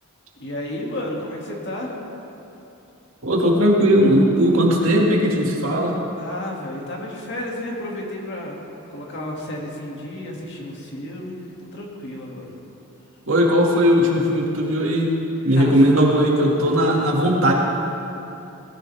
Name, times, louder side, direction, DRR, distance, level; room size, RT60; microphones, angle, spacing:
voice 1, 0.4-2.0 6.2-8.6 8.9-12.5 15.5-15.8, left 1 dB, 50° left, -2 dB, 2.4 m, -32 dB
voice 2, 3.2-6.0 13.3-15.1 15.4-17.5, equal, 60° right, -2 dB, 2.3 m, -18 dB
20.5 x 14.5 x 3.6 m, 2.9 s
head